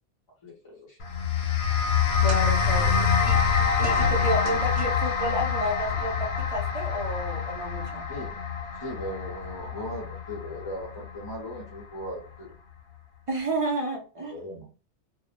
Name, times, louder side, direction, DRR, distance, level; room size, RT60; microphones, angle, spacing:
voice 1, 0.4-1.0 2.8-3.0 8.1-8.4 8.8-12.5 14.3-14.7, equal, 35° left, -2 dB, 0.4 m, -38 dB
sound 1, 1.0-11.5, left 6 dB, 65° left, 0.8 m, -26 dB
sound 2, 2.1-5.2 6.2-6.3 7.2-7.3, right 1 dB, 80° right, 1.0 m, -39 dB
voice 2, 2.2-2.9 3.2-3.4 3.8-8.1 13.3-14.4, right 1 dB, 45° right, 1 dB, 0.4 m, -31 dB
2.2 x 2.0 x 2.8 m, 0.34 s
omnidirectional pair, 1.2 m